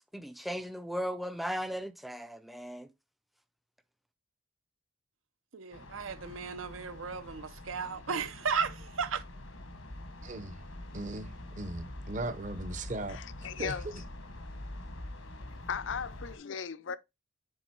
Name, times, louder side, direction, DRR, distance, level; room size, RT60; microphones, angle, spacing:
voice 1, 0.1-2.9, equal, ahead, 0.3 m, -37 dB
voice 2, 5.5-9.2, right 6 dB, 90° right, 0.8 m, -35 dB
sound 1, 5.7-16.4, left 1 dB, 90° left, 1.4 m, -45 dB
voice 3, 10.2-10.6 10.9-13.2 13.6-13.8, right 2 dB, 40° right, 0.7 m, -38 dB
voice 4, 13.1-13.9 15.7-17.0, left 7 dB, 75° left, 0.5 m, -37 dB
7.1 x 3.9 x 4.4 m
head